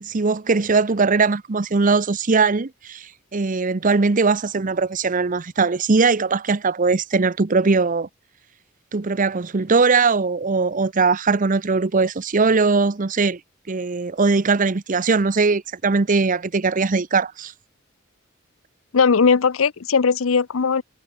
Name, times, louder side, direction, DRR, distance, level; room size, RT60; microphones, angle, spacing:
voice 1, 0.0-8.1 8.9-13.4 13.7-17.5, right 4 dB, 40° right, 0.7 m, -20 dB
voice 2, 18.9-20.8, left 5 dB, 85° left, 0.6 m, -18 dB
head